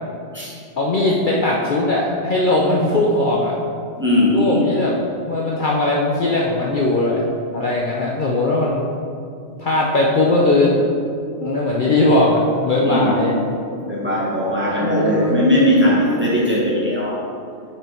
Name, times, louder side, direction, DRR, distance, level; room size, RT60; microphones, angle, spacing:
voice 1, 0.8-3.5 4.3-5.0 5.3-7.2 7.5-8.8 9.6-10.8 11.4-13.3 14.7-15.3, left 2 dB, 50° left, -3 dB, 0.8 m, -19 dB
voice 2, 4.0-4.7 12.8-13.2 13.7-17.2, left 1 dB, 10° right, -6 dB, 1.5 m, -19 dB
8.6 x 4.6 x 4.4 m, 2.4 s
omnidirectional pair, 1.2 m